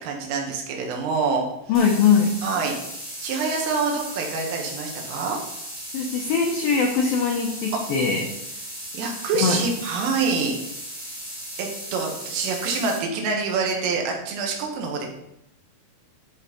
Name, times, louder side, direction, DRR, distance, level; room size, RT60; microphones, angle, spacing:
voice 1, 0.0-1.5 2.4-5.4 7.7-7.8 8.9-10.6 11.6-15.1, right 4 dB, 90° right, 1 dB, 4.1 m, -26 dB
voice 2, 1.7-2.3 5.9-8.2 9.4-9.6, left 6 dB, 85° left, 1 dB, 2.0 m, -21 dB
sound 1, 1.7-13.0, equal, 20° right, 0.8 m, -36 dB
13.0 x 4.3 x 5.2 m, 0.84 s
omnidirectional pair, 5.6 m